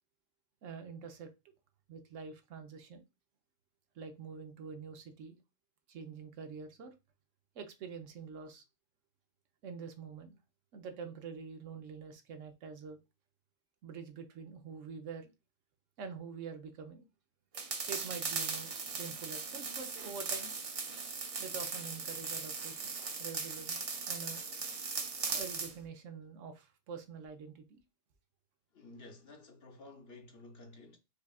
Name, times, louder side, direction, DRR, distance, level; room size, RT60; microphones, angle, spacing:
voice 1, 0.6-1.3 1.9-3.0 4.0-5.4 5.9-6.9 7.5-8.6 9.6-10.4 10.7-13.0 13.8-15.3 16.0-17.1 17.9-20.5 21.4-24.4 25.3-27.8, right 6 dB, 85° right, 1.0 m, -46 dB
sound 1, 17.5-25.7, right 4 dB, 60° right, 0.3 m, -38 dB
voice 2, 28.7-31.0, left 2 dB, 55° left, 1.0 m, -53 dB
4.9 x 2.4 x 2.3 m
omnidirectional pair, 1.3 m